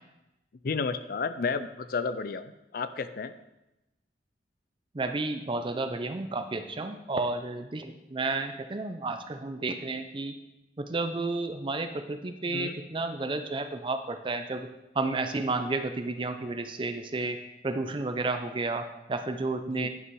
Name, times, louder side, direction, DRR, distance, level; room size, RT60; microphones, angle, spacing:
voice 1, 0.6-3.3 12.5-12.8 19.7-19.9, left 4 dB, 55° left, 12 dB, 0.4 m, -32 dB
voice 2, 4.9-10.4 10.8-14.7 14.9-19.9, right 3 dB, 30° right, 8 dB, 0.5 m, -32 dB
11.0 x 6.1 x 4.6 m, 0.95 s
head